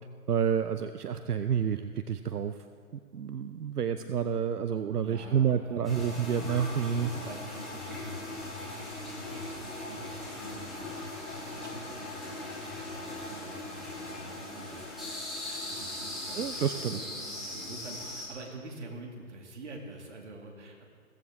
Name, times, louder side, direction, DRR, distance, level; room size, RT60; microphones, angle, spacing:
voice 1, 0.3-2.6 3.1-7.1 16.3-17.0, right 8 dB, 80° right, 10 dB, 0.7 m, -29 dB
voice 2, 4.0-4.4 5.0-20.8, right 2 dB, 50° right, 1 dB, 2.4 m, -47 dB
sound 1, 5.8-18.3, left 2 dB, ahead, 1.5 m, -39 dB
16.5 x 14.5 x 3.7 m, 2.1 s
hypercardioid pair, 155°, 45 cm